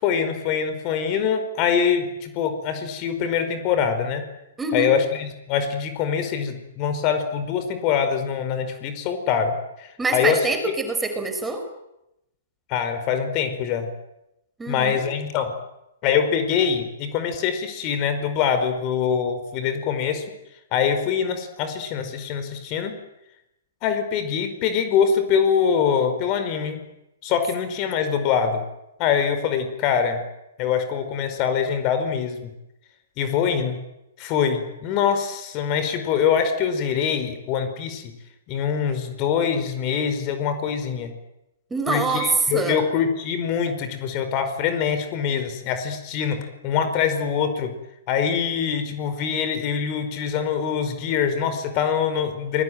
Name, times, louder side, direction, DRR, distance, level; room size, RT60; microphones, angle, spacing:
voice 1, 0.0-4.2 4.7-10.4 12.7-13.9 14.7-15.5 16.0-20.2 20.7-23.0 23.8-26.8 27.2-28.6 29.0-30.2 30.6-32.5 33.2-33.8 34.2-38.1 38.5-41.1 41.9-47.7 48.1-52.6, left 7 dB, 35° left, 9 dB, 5.0 m, -24 dB
voice 2, 4.6-4.9 10.0-11.6 14.6-15.0 41.7-42.3 42.5-42.8, right 3 dB, 10° right, 6 dB, 5.2 m, -25 dB
28.5 x 21.0 x 9.3 m, 0.87 s
hypercardioid pair, 120°, 0 cm